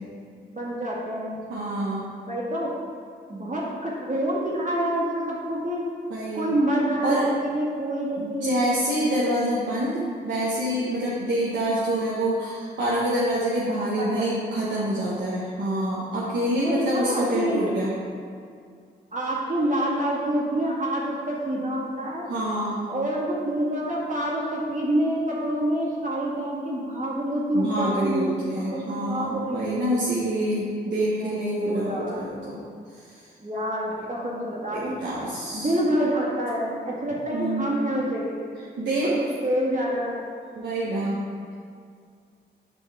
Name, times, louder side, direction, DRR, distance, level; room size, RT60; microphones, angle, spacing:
voice 1, 0.5-1.4 2.3-2.8 3.3-5.8 6.3-7.2 7.4-8.6 13.8-14.3 16.5-17.7 19.1-22.3 22.9-29.8 30.9-32.2 33.4-35.0 35.2-38.4 39.0-39.1 39.4-40.2, right 1 dB, 40° right, -5 dB, 1.9 m, -27 dB
voice 2, 1.5-2.0 6.1-6.5 7.0-7.3 8.2-17.9 22.3-22.9 27.5-32.6 33.1-33.2 34.7-35.7 37.3-38.0 38.8-39.1 40.5-41.2, right 1 dB, 75° right, -7 dB, 1.1 m, -26 dB
8.0 x 5.3 x 3.6 m, 2.2 s
cardioid pair, 55°, 19 cm